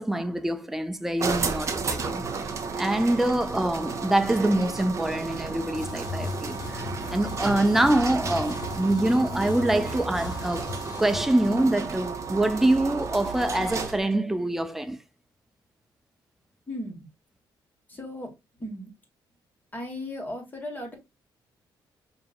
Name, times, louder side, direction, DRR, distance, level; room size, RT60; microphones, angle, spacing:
voice 1, 0.0-2.2 2.8-6.8 7.1-10.7 11.0-15.0, right 1 dB, 5° right, 0.4 m, -25 dB
sound 1, 1.2-14.1, right 4 dB, 35° right, 0.7 m, -33 dB
sound 2, 5.7-11.2, left 4 dB, 50° left, 0.6 m, -37 dB
voice 2, 16.7-17.1 17.9-18.3 18.6-18.9 19.7-21.0, left 1 dB, 20° left, 1.5 m, -36 dB
5.1 x 2.8 x 2.4 m
cardioid pair, 135°, 9 cm